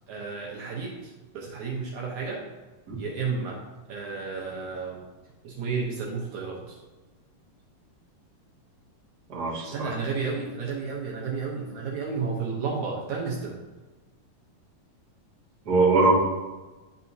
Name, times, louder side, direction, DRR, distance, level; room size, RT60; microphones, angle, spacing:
voice 1, 0.1-2.5 3.0-3.6 3.9-5.0 5.4-6.8 9.7-13.6, right 5 dB, 70° right, -2 dB, 2.1 m, -32 dB
voice 2, 9.3-9.9 15.6-16.1, right 3 dB, 45° right, -6 dB, 1.4 m, -22 dB
10.5 x 4.2 x 2.7 m, 1.2 s
omnidirectional pair, 3.9 m